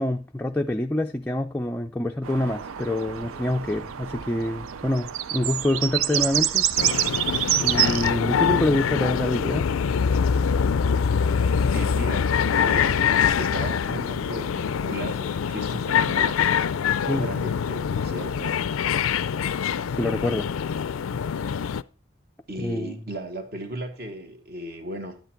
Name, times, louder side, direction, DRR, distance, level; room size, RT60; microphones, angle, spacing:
voice 1, 0.0-6.7 7.6-9.7 17.1-17.3 20.0-20.5 22.6-23.0, left 1 dB, 10° left, 0.4 m, -26 dB
sound 1, 2.2-8.1, right 11 dB, 90° right, 0.5 m, -27 dB
sound 2, 6.8-21.8, left 7 dB, 85° left, 0.4 m, -24 dB
voice 2, 11.2-16.5 17.1-18.6 22.5-25.2, right 1 dB, 50° right, 1.6 m, -36 dB
10.5 x 8.1 x 4.4 m
head